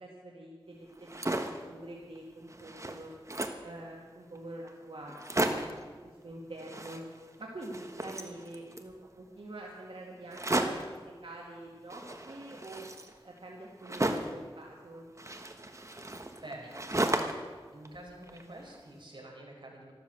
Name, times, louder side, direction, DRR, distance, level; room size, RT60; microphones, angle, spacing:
voice 1, 0.0-3.1 3.6-5.1 5.5-7.0 7.4-10.8 11.2-12.9 13.2-15.1, right 1 dB, 90° right, -3 dB, 2.1 m, -46 dB
sound 1, 0.9-1.7 2.2-2.3 2.5-3.7 4.4-4.5 4.7-4.8 5.1-5.8 6.6-7.4 7.6-8.9 10.3-11.0 11.9-14.4 15.2-17.5 17.9-18.8, right 1 dB, 35° right, 1.2 m, -34 dB
voice 2, 16.4-16.9 17.7-19.9, right 1 dB, 65° right, -1 dB, 4.5 m, -47 dB
13.0 x 12.5 x 7.7 m, 1.5 s
wide cardioid pair, 65°, 9 cm